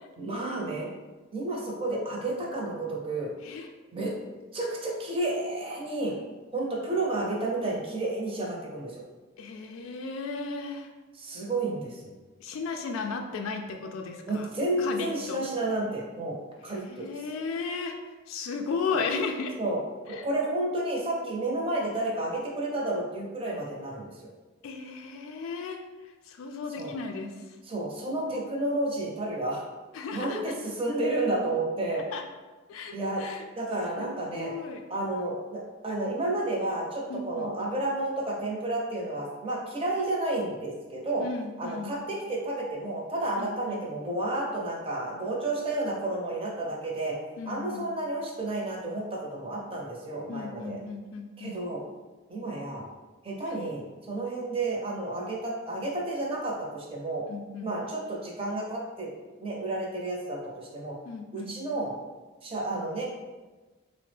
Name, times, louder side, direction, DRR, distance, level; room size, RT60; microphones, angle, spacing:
voice 1, 0.2-0.9 1.3-3.3 3.9-4.1 4.5-6.1 6.5-9.0 11.1-12.1 14.3-16.4 16.6-17.2 19.6-19.8 20.1-24.3 26.8-26.9 27.7-29.6 30.1-32.0 32.9-33.2 33.5-34.5 34.9-41.2 41.6-47.2 47.5-50.8 51.4-51.8 52.3-52.8 53.2-57.2 57.6-59.1 59.4-61.0 61.3-61.9 62.4-63.3, right 2 dB, 30° right, -2 dB, 0.6 m, -31 dB
voice 2, 9.4-10.9 12.4-14.5 14.8-15.5 16.9-18.0 18.3-19.6 20.1-20.3 24.6-27.5 29.9-30.6 32.1-32.2 32.7-33.5 34.0-34.8 37.1-37.6 41.2-41.9 43.4-43.8 47.4-47.9 50.3-51.6 53.5-53.6 57.3-57.7 61.0-61.6, left 4 dB, 90° left, 4 dB, 0.3 m, -35 dB
3.3 x 2.0 x 3.2 m, 1.2 s
head